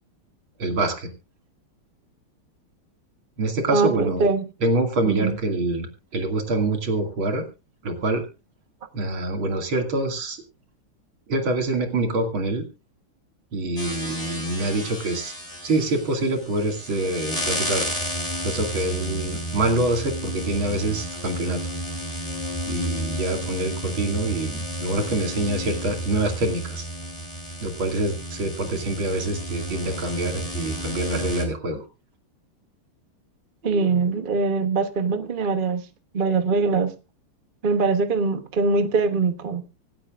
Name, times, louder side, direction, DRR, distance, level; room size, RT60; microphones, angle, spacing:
voice 1, 0.6-1.1 3.4-4.3 4.6-7.4 7.8-8.3 8.9-10.4 11.3-12.7 13.5-15.3 15.6-17.9 18.4-21.7 22.7-26.9 27.6-31.8, right 2 dB, 70° right, 3.2 m, -25 dB
voice 2, 3.7-4.4 5.0-5.3 33.6-35.8 36.1-36.9 37.6-39.6, right 4 dB, 35° right, 1.0 m, -22 dB
sound 1, 13.8-31.5, equal, 15° left, 3.8 m, -31 dB
25.5 x 8.6 x 2.5 m
omnidirectional pair, 2.3 m